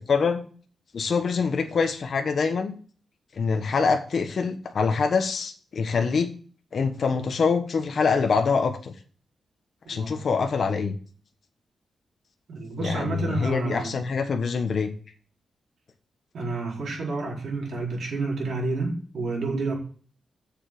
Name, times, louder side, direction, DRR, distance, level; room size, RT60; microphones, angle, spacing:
voice 1, 0.1-0.5 0.9-2.7 3.4-6.3 6.7-8.9 9.9-11.0 12.8-14.9, left 5 dB, 50° left, 5 dB, 1.2 m, -25 dB
voice 2, 12.5-14.0 16.3-19.8, right 3 dB, 65° right, -2 dB, 4.6 m, -29 dB
7.4 x 7.0 x 7.7 m, 0.42 s
wide cardioid pair, 145°, 0 cm